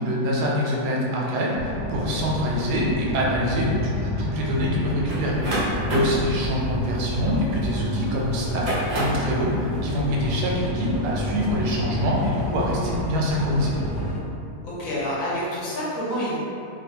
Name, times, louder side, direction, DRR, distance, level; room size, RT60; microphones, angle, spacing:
voice 1, 0.0-13.7, equal, 90° right, -3 dB, 1.2 m, -25 dB
sound 1, 1.5-14.2, equal, 25° left, 1.0 m, -30 dB
sound 2, 5.1-7.8 8.4-9.3, right 1 dB, 55° right, 0.5 m, -28 dB
voice 2, 14.6-16.4, equal, 65° left, -8 dB, 1.1 m, -28 dB
2.7 x 2.4 x 2.7 m, 2.6 s
omnidirectional pair, 1.7 m